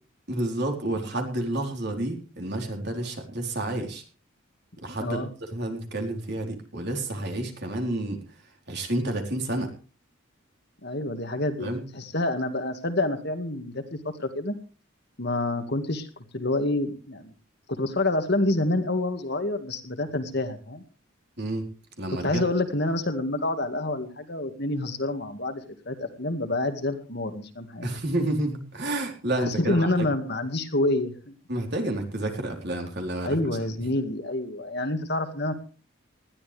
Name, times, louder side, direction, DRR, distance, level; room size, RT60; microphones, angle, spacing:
voice 1, 0.3-4.0 4.8-8.2 8.7-9.7 11.6-11.8 21.4-21.7 22.0-22.4 27.8-30.1 31.5-33.4, right 1 dB, 50° right, 3 dB, 4.0 m, -30 dB
voice 2, 5.0-5.3 10.8-14.6 15.2-17.3 17.7-20.8 22.2-27.9 29.4-31.1 33.2-35.5, left 2 dB, 50° left, 7 dB, 2.1 m, -28 dB
20.0 x 14.0 x 3.4 m, 0.37 s
head